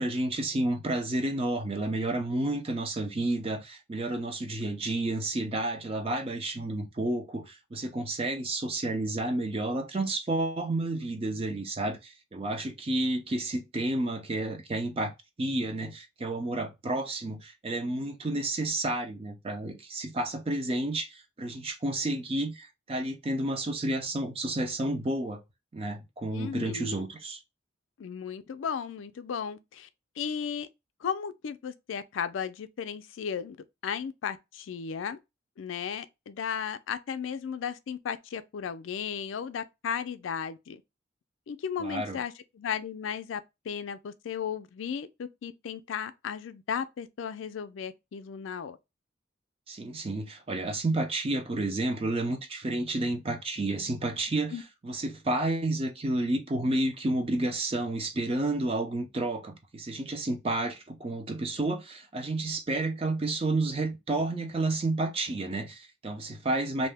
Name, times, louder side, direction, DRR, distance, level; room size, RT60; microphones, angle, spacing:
voice 1, 0.0-15.1 15.4-25.4 25.7-27.4 41.8-42.2 49.7-66.9, right 2 dB, 30° right, 0.5 m, -31 dB
voice 2, 26.3-27.0 28.0-29.9 30.2-30.7 31.0-33.6 33.8-35.2 35.6-40.8 41.5-48.8 54.5-54.6, left 7 dB, 80° left, 0.4 m, -35 dB
2.6 x 2.1 x 3.3 m
head